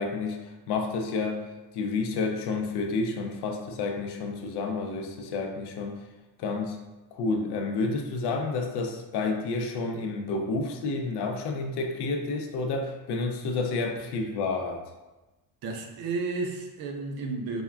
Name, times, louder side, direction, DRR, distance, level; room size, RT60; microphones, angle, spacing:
voice 1, 0.0-6.0 6.4-6.8 7.1-14.8, left 3 dB, 90° left, 4 dB, 0.5 m, -30 dB
voice 2, 15.6-17.6, right 3 dB, 65° right, 3 dB, 0.5 m, -32 dB
3.4 x 2.2 x 2.2 m, 1.1 s
cardioid pair, 170°, 39 cm